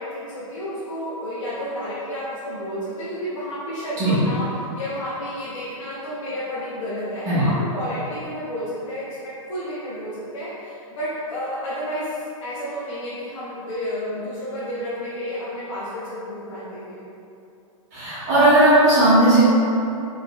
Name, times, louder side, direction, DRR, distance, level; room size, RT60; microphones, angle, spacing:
voice 1, 0.0-17.0, equal, 60° left, -10 dB, 0.9 m, -31 dB
voice 2, 17.9-19.4, right 1 dB, 30° right, -12 dB, 1.3 m, -16 dB
4.3 x 3.7 x 2.4 m, 2.8 s
hypercardioid pair, 175°, 18 cm